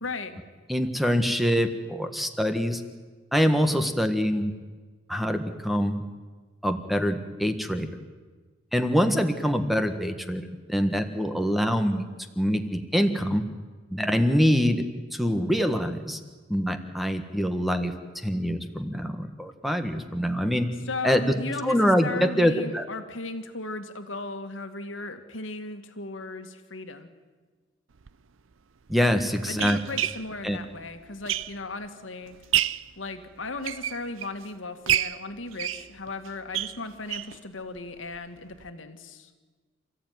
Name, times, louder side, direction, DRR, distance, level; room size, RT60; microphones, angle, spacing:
voice 1, 0.0-0.4 20.9-27.1 29.5-32.4 33.0-39.3, left 3 dB, 80° left, 7 dB, 2.1 m, -36 dB
voice 2, 0.7-2.8 3.3-4.5 5.1-6.0 6.6-7.9 8.7-12.0 12.4-13.5 13.9-14.8 15.1-16.2 16.5-17.9 18.2-20.7 21.0-21.3 21.6-22.8 28.9-29.8 30.4-30.6, equal, ahead, 7 dB, 1.5 m, -24 dB
sound 1, 28.0-28.1 28.9-31.9 32.3-32.9 33.4-34.4 34.9-37.4 37.8-37.9 38.1-38.2 38.6-38.7, right 12 dB, 85° right, 0.6 m, -29 dB
28.5 x 15.0 x 9.5 m, 1.4 s
head